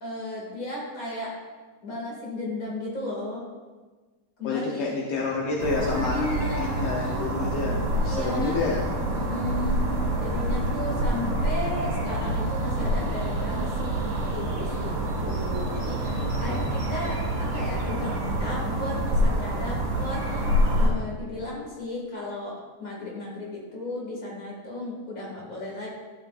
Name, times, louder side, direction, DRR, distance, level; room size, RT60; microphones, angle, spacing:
voice 1, 0.0-1.3 1.8-3.4 4.4-4.9 5.8-7.2 8.0-8.6 9.1-14.9 15.2-20.5 20.7-25.9, left 1 dB, 30° left, -3 dB, 2.2 m, -35 dB
voice 2, 4.4-6.3 6.6-7.8 8.0-8.8 16.5-16.6, left 4 dB, 75° left, -2 dB, 1.3 m, -28 dB
sound 1, 5.1-12.8, equal, 25° right, 2.3 m, -48 dB
sound 2, 5.6-20.9, right 1 dB, 60° right, 2.5 m, -27 dB
12.0 x 6.3 x 2.5 m, 1.3 s
omnidirectional pair, 3.4 m